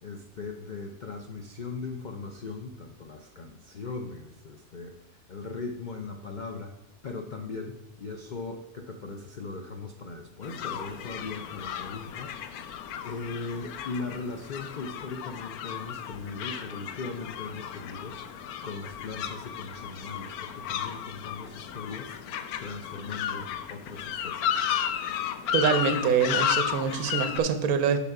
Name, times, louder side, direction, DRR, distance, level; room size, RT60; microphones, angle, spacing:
voice 1, 0.0-5.0 5.3-6.7 7.0-12.6 13.0-18.2 18.6-24.6, left 4 dB, 60° left, 3 dB, 0.4 m, -39 dB
sound 1, 10.4-27.4, left 9 dB, 90° left, 1.1 m, -34 dB
voice 2, 25.5-28.0, right 6 dB, 75° right, 9 dB, 1.2 m, -25 dB
6.8 x 5.7 x 4.7 m, 1.1 s
omnidirectional pair, 1.5 m